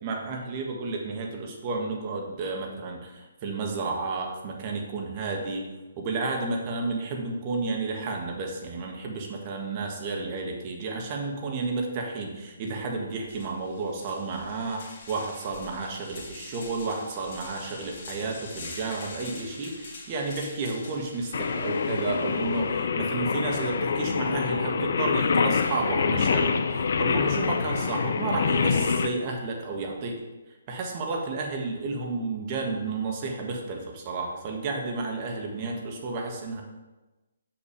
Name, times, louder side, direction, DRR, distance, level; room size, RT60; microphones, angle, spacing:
voice 1, 0.0-5.6 6.0-30.2 30.7-36.6, right 3 dB, 35° right, 1 dB, 1.6 m, -32 dB
sound 1, 12.8-12.9 13.2-22.8, left 3 dB, 45° left, 2.0 m, -45 dB
Singing, 21.3-29.1, left 5 dB, 65° left, 0.5 m, -26 dB
6.4 x 6.0 x 5.1 m, 1.1 s
hypercardioid pair, 145°, 0 cm